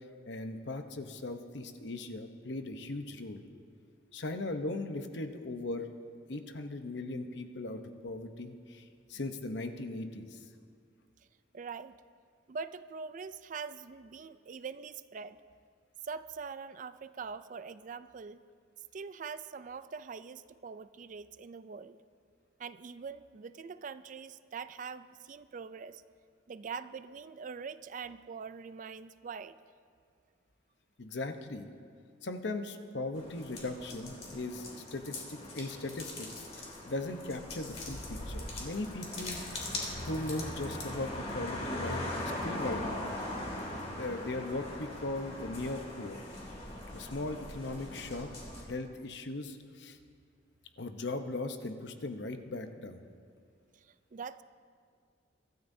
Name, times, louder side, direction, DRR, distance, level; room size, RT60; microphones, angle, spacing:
voice 1, 0.2-3.4 4.1-5.9 6.3-10.4 31.0-31.7 32.2-39.6 40.0-43.1 43.9-46.2 46.9-48.3 48.6-50.0 50.8-53.0, left 2 dB, 65° left, 7 dB, 0.9 m, -38 dB
voice 2, 11.5-12.0 12.5-15.4 16.0-18.4 18.9-22.0 22.6-26.0 26.5-29.6 43.4-44.0 53.7-54.4, right 5 dB, 45° right, 14 dB, 0.4 m, -43 dB
sound 1, 33.1-48.6, left 1 dB, 35° left, 2.4 m, -40 dB
23.5 x 13.5 x 2.7 m, 2.1 s
head